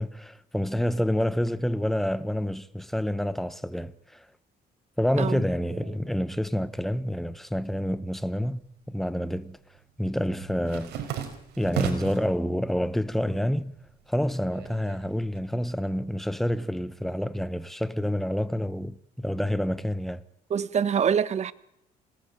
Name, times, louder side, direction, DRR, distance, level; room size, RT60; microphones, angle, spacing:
voice 1, 0.0-4.2 5.0-9.6 10.0-11.0 11.6-13.7 14.1-20.2, equal, ahead, 1.2 m, -28 dB
sound 1, 8.5-9.2 9.5-12.3 12.8-13.4 13.7-15.4, right 9 dB, 80° right, 4.4 m, -35 dB
voice 2, 20.5-21.5, right 7 dB, 40° right, 1.2 m, -25 dB
27.5 x 18.5 x 9.2 m
cardioid pair, 110°, 17 cm